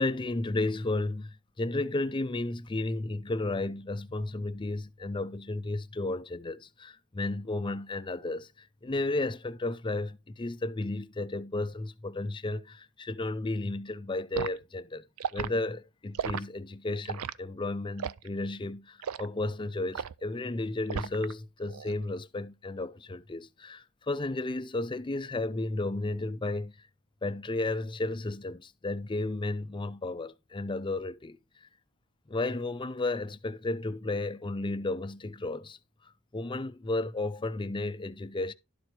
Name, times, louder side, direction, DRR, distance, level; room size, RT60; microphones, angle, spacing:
voice 1, 0.0-15.0 15.3-26.7 27.2-31.4 32.3-35.8 36.3-38.5, left 2 dB, 20° left, 0.5 m, -33 dB
Liquid, 14.3-14.6 15.2-15.5 16.1-16.4 17.1-17.4 18.0-18.3 19.0-19.3 19.9-20.2 20.9-21.3 21.7-21.9, right 7 dB, 75° right, 0.4 m, -34 dB
12.0 x 4.4 x 4.7 m
head